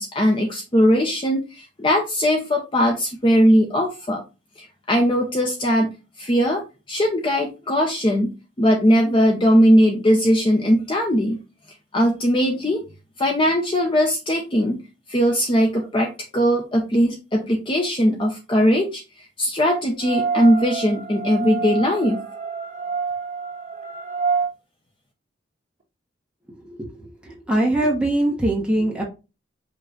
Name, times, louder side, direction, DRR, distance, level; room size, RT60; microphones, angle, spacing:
voice 1, 0.0-4.2 4.6-5.9 6.2-8.3 8.6-11.4 11.9-12.8 13.2-14.8 15.1-19.0 19.4-22.2, equal, 25° left, 1 dB, 0.7 m, -19 dB
sound 1, 20.0-24.5, right 5 dB, 35° right, 1.4 m, -27 dB
voice 2, 27.2-29.0, right 1 dB, 5° right, -2 dB, 1.0 m, -21 dB
5.5 x 2.4 x 4.0 m, 0.29 s
head